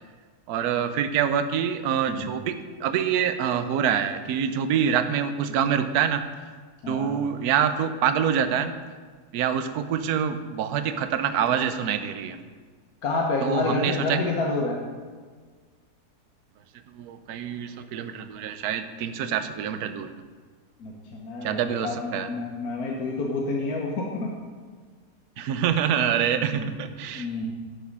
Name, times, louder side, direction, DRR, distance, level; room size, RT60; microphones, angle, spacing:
voice 1, 0.5-6.2 6.9-8.7 9.3-12.4 13.4-14.2 16.9-20.1 21.4-22.3 25.4-27.3, right 8 dB, 75° right, 10 dB, 1.1 m, -26 dB
voice 2, 6.8-7.1 13.0-14.8 20.8-24.3 26.3-26.7 27.1-27.5, left 3 dB, 70° left, -1 dB, 1.5 m, -29 dB
11.5 x 6.4 x 5.3 m, 1.5 s
omnidirectional pair, 1.7 m